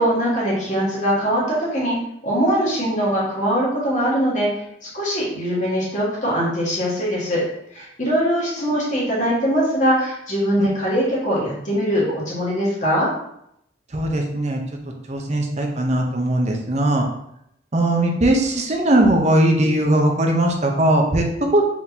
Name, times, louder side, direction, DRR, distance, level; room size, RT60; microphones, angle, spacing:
voice 1, 0.0-1.9 2.2-4.5 4.9-7.4 7.7-13.1, equal, 40° left, -6 dB, 1.6 m, -21 dB
voice 2, 13.9-14.6 15.1-17.1 17.7-21.6, right 1 dB, 40° right, 2 dB, 0.7 m, -19 dB
4.5 x 3.8 x 2.8 m, 0.76 s
head